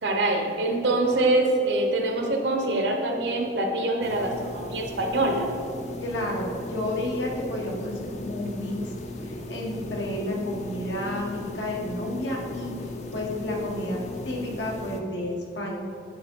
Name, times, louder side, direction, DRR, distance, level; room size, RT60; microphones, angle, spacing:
voice 1, 0.0-5.5, right 2 dB, 75° right, 2 dB, 0.9 m, -24 dB
sound 1, 4.0-15.0, left 2 dB, 40° left, 0.5 m, -37 dB
voice 2, 6.0-8.8 9.2-12.7 13.1-15.7, left 1 dB, 85° left, -1 dB, 1.3 m, -31 dB
9.1 x 3.6 x 4.5 m, 2.6 s
head